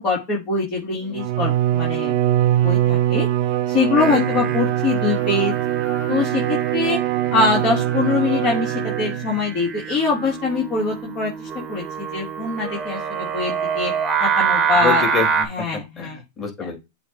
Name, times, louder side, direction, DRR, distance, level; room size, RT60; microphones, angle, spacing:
voice 1, 0.0-2.1 2.6-3.3 3.7-5.6 6.1-7.0 7.3-13.9 14.2-15.0 15.4-16.2, left 4 dB, 35° left, -3 dB, 3.4 m, -23 dB
Bowed string instrument, 1.1-9.4, right 13 dB, 50° right, 0.8 m, -22 dB
Singing, 4.0-15.4, right 7 dB, 25° right, 1.4 m, -27 dB
voice 2, 4.1-4.6 14.8-16.8, left 5 dB, 20° left, 2 dB, 4.0 m, -27 dB
7.8 x 3.1 x 4.8 m, 0.23 s
hypercardioid pair, 125°, 0 cm